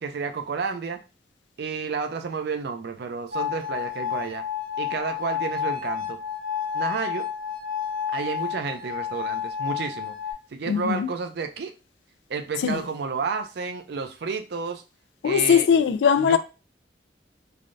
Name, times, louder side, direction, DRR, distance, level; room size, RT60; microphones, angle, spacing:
voice 1, 0.0-1.0 1.6-4.4 4.8-6.2 6.7-7.3 8.1-10.1 10.5-11.7 12.3-14.8 15.2-15.7 16.2-16.4, right 5 dB, 65° right, 0.4 m, -31 dB
sound 1, 3.3-10.3, left 8 dB, 50° right, 1.0 m, -30 dB
voice 2, 10.7-11.1 12.6-12.8 15.2-16.4, left 7 dB, 85° left, 0.3 m, -20 dB
3.4 x 2.2 x 2.5 m
head